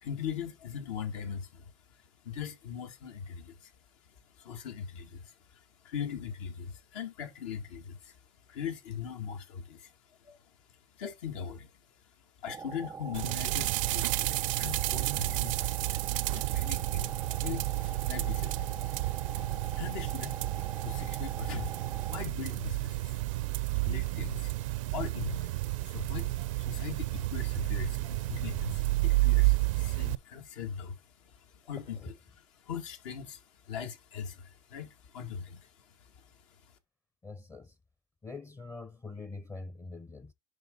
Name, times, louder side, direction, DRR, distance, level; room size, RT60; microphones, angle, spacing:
voice 1, 0.0-1.7 2.2-3.7 4.4-8.2 8.5-9.9 10.2-10.4 10.9-11.7 12.4-15.9 16.3-18.8 19.2-20.4 20.7-23.2 23.6-36.2, left 7 dB, 80° left, 2.2 m, -41 dB
sound 1, 12.5-22.2, right 5 dB, 20° right, 0.4 m, -43 dB
sound 2, 13.1-30.1, right 20 dB, 85° right, 0.5 m, -31 dB
voice 2, 37.2-37.7 38.2-40.3, left 3 dB, 20° left, 0.6 m, -44 dB
11.0 x 3.7 x 3.9 m
supercardioid pair, 110°, 16 cm